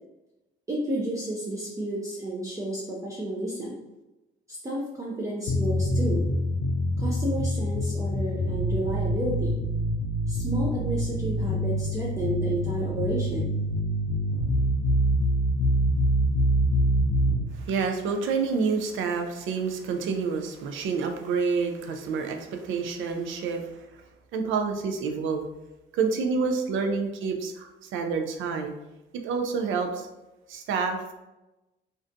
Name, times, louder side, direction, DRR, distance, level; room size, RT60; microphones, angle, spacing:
voice 1, 0.7-3.8 4.5-6.2 7.0-9.6 10.3-13.6 26.8-27.0, right 1 dB, 15° right, -4 dB, 0.4 m, -31 dB
sound 1, 5.5-17.4, equal, 90° left, 0.4 m, -25 dB
voice 2, 17.5-23.8 24.3-25.5 25.9-28.7 29.2-30.1 30.5-31.1, right 5 dB, 80° right, 5 dB, 0.4 m, -28 dB
2.4 x 2.2 x 2.5 m, 1.0 s
cardioid pair, 90°, 20 cm